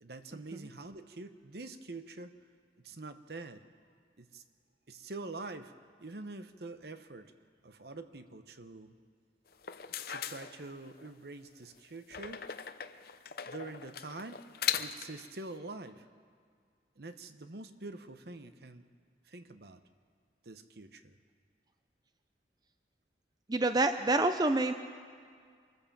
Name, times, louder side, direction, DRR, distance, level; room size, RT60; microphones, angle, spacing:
voice 1, 0.0-2.3 2.8-3.6 4.2-4.4 4.9-5.7 6.0-7.3 7.6-8.9 10.1-12.4 13.5-14.4 14.8-16.0 17.0-18.8 19.3-19.8 20.4-21.2, right 3 dB, 55° right, 10 dB, 0.9 m, -45 dB
sound 1, 9.5-11.1 12.1-15.3, left 9 dB, 55° left, 0.7 m, -39 dB
voice 2, 23.5-24.7, right 2 dB, 20° right, 8 dB, 0.5 m, -27 dB
26.0 x 14.5 x 7.3 m, 2.1 s
head